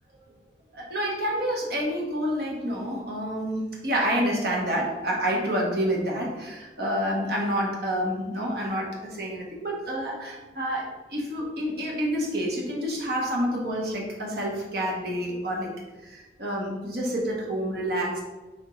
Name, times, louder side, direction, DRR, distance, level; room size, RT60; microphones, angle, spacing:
voice 1, 0.7-15.7 16.0-18.2, equal, 60° right, -2 dB, 1.2 m, -28 dB
3.6 x 3.5 x 3.9 m, 1.2 s
head